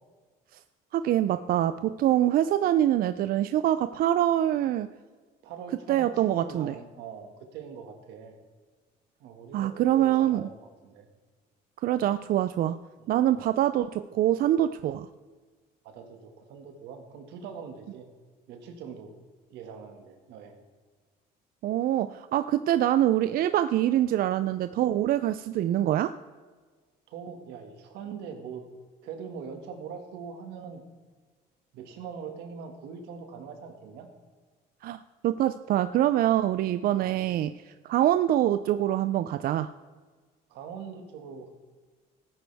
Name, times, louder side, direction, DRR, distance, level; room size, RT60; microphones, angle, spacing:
voice 1, 0.9-4.9 5.9-6.7 9.5-10.4 11.8-12.8 13.1-15.1 21.6-26.1 34.8-37.5 37.8-39.7, right 12 dB, 60° right, 12 dB, 0.4 m, -25 dB
voice 2, 5.4-8.3 9.2-11.1 13.0-13.4 15.8-18.1 18.5-19.1 19.5-20.6 27.1-28.6 29.0-30.8 31.7-34.1 36.9-37.2 40.5-41.5, right 6 dB, 90° right, 4 dB, 1.9 m, -42 dB
16.0 x 9.3 x 3.5 m, 1.4 s
cardioid pair, 110°, 17 cm